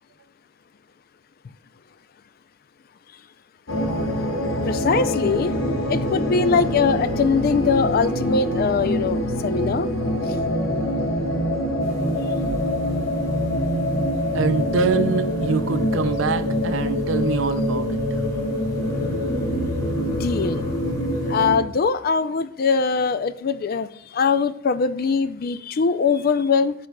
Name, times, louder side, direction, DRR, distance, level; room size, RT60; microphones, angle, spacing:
sound 1, 3.7-21.6, equal, 85° left, 1.2 m, -24 dB
voice 1, 4.7-5.6 5.9-9.9 20.1-20.6 21.3-26.7, left 5 dB, 50° left, 14 dB, 0.4 m, -22 dB
sound 2, 11.8-21.4, equal, 20° left, 1.7 m, -42 dB
voice 2, 14.3-18.0, right 4 dB, 75° right, 10 dB, 0.4 m, -24 dB
12.5 x 5.2 x 2.2 m, 0.77 s
head